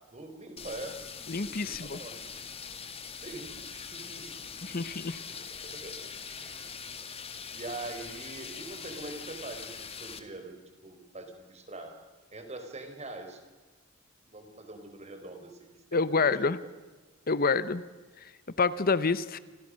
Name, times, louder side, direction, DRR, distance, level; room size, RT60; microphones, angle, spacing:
voice 1, 0.1-1.0 1.3-2.3 3.2-4.7 5.6-6.6 7.5-12.0 12.3-13.4 14.3-16.5, right 2 dB, 35° right, 6 dB, 4.5 m, -44 dB
sound 1, 0.6-10.2, left 6 dB, 30° left, 2.2 m, -42 dB
voice 2, 1.3-2.0 4.6-5.2 15.9-16.6 17.3-17.8 18.6-19.4, left 4 dB, 45° left, 16 dB, 0.9 m, -27 dB
29.0 x 26.5 x 6.5 m, 1.3 s
head